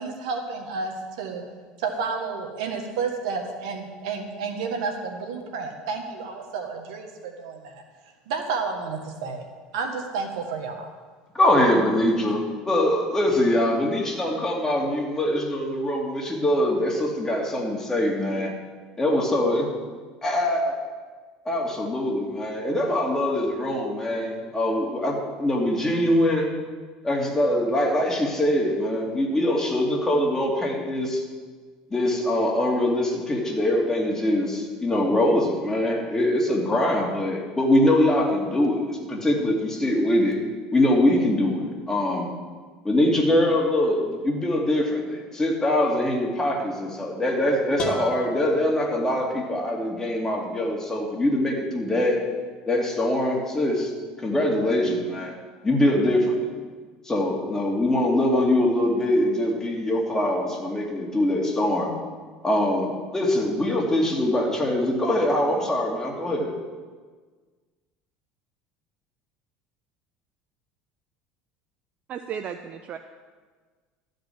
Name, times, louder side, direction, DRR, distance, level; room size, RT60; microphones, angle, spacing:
voice 1, 0.0-1.4 1.8-7.8 8.3-9.5 9.7-10.9, right 5 dB, 85° right, 3 dB, 1.7 m, -31 dB
voice 2, 11.3-18.5 19.0-19.7 20.2-20.8 21.4-26.5 27.0-31.2 31.9-40.4 40.7-42.3 42.8-52.2 52.7-53.9 54.2-55.3 55.6-56.5 57.0-61.9 62.4-66.5, left 1 dB, 15° left, -1 dB, 2.7 m, -23 dB
sound 1, 47.8-49.7, left 3 dB, 40° left, 2.3 m, -35 dB
voice 3, 72.1-73.0, right 8 dB, 45° right, 7 dB, 0.6 m, -34 dB
13.0 x 5.3 x 9.1 m, 1.5 s
supercardioid pair, 105°, 3 cm